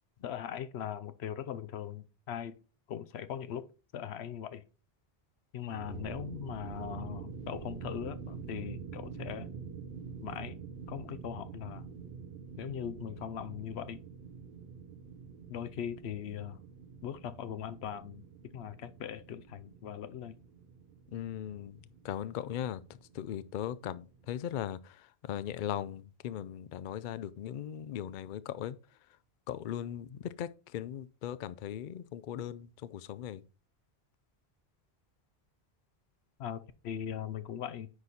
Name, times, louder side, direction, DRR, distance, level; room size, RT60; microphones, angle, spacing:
voice 1, 0.2-2.6 2.9-3.7 3.9-4.6 5.5-9.5 10.2-10.6 10.9-11.9 12.6-14.0 15.5-16.6 17.0-18.2 18.5-20.4 36.4-37.9, left 9 dB, 85° left, 0.9 m, -40 dB
sound 1, 5.6-24.4, right 6 dB, 70° right, 0.9 m, -46 dB
voice 2, 21.1-21.8 22.0-22.8 23.2-24.8 25.3-28.8 29.5-30.5 30.7-33.4, left 10 dB, 60° left, 0.6 m, -38 dB
9.7 x 4.1 x 4.2 m
omnidirectional pair, 1.1 m